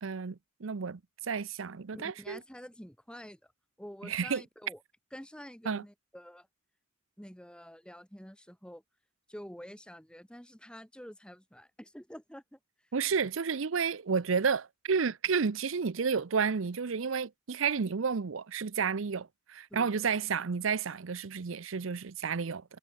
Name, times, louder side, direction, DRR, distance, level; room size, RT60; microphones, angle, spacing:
voice 1, 0.0-2.4 4.0-4.4 5.7-5.8 12.9-22.6, right 5 dB, 75° right, 0.6 m, -31 dB
voice 2, 1.9-3.5 3.8-4.8 5.1-6.5 7.2-8.8 9.3-12.6 19.7-20.0, equal, 5° left, 7.6 m, -48 dB
head